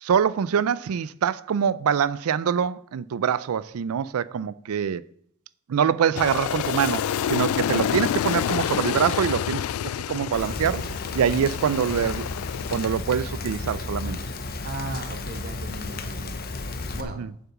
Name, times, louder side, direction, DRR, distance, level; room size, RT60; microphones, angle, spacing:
voice 1, 0.0-5.0 5.7-9.6 10.1-10.8 11.1-12.3 12.7-14.2 17.2-17.3, right 7 dB, 75° right, 0.4 m, -24 dB
Aircraft, 6.2-12.9, left 9 dB, 75° left, 0.3 m, -28 dB
Rain, 10.3-17.0, left 3 dB, 45° left, 0.8 m, -33 dB
voice 2, 14.6-16.3 16.9-17.2, right 2 dB, 45° right, 1.3 m, -35 dB
7.4 x 7.1 x 5.8 m
head